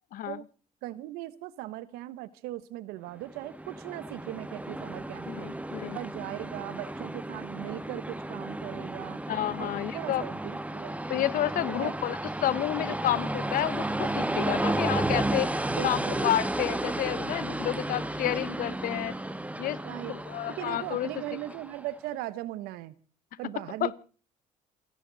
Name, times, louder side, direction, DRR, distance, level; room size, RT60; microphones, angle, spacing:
voice 1, 0.8-5.5 5.9-9.2 9.6-11.2 11.7-11.9 15.7-16.3 19.8-20.2 20.5-22.9 23.4-23.9, right 15 dB, 85° right, 1.1 m, -39 dB
Train, 3.3-21.9, right 1 dB, 10° right, 1.7 m, -33 dB
voice 2, 5.3-6.0 9.3-10.3 11.1-15.5 15.8-19.1 19.6-19.8 20.1-21.1 23.8-23.9, left 13 dB, 65° left, 0.8 m, -30 dB
28.0 x 11.0 x 4.0 m
supercardioid pair, 75°, 16 cm